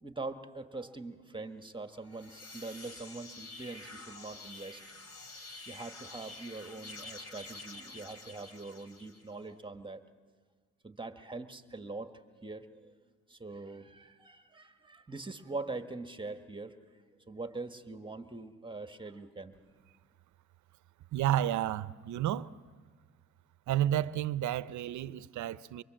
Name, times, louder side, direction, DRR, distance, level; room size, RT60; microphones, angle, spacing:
voice 1, 0.0-5.3 5.7-10.0 10.8-13.0 13.3-16.7 17.3-19.5, right 3 dB, 15° right, 1.4 m, -43 dB
sound 1, 2.0-9.4, left 2 dB, 55° left, 3.2 m, -48 dB
voice 2, 21.1-22.5 23.7-25.8, right 12 dB, 70° right, 0.7 m, -31 dB
25.0 x 24.5 x 7.6 m
cardioid pair, 90°, 30 cm